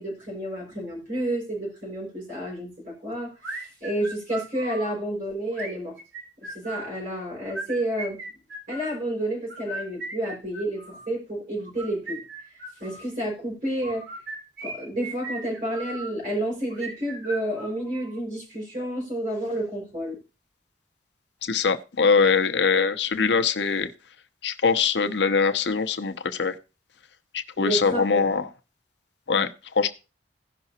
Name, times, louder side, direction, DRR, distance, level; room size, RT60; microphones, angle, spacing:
voice 1, 0.0-6.0 6.4-8.2 8.7-12.2 12.5-14.0 14.6-20.2 27.6-28.4, right 1 dB, 45° right, 5.0 m, -30 dB
sound 1, 3.4-4.9 5.5-7.0 7.4-9.0 9.5-11.1 11.7-13.1 13.8-16.1 16.7-18.2, right 2 dB, 70° right, 2.2 m, -38 dB
voice 2, 21.4-23.9 24.4-26.6 27.3-28.5 29.3-29.9, left 5 dB, 70° left, 0.7 m, -23 dB
17.0 x 5.8 x 2.8 m
head